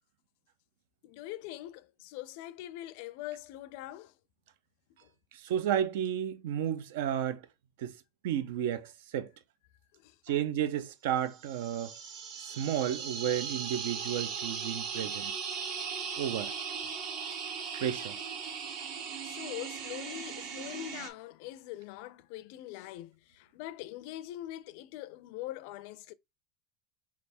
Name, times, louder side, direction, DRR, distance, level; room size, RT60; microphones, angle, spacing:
voice 1, 1.0-4.2 5.0-5.1 9.9-10.4 15.0-15.1 19.2-26.1, left 15 dB, 65° left, 0.4 m, -43 dB
voice 2, 5.3-7.4 7.8-8.0 8.2-9.3 10.3-11.9 12.4-15.3 16.2-16.5 17.7-18.2, right 10 dB, 75° right, 0.5 m, -32 dB
sound 1, 11.4-21.1, right 6 dB, 55° right, 1.0 m, -38 dB
3.3 x 2.4 x 4.3 m
supercardioid pair, 125°, 0 cm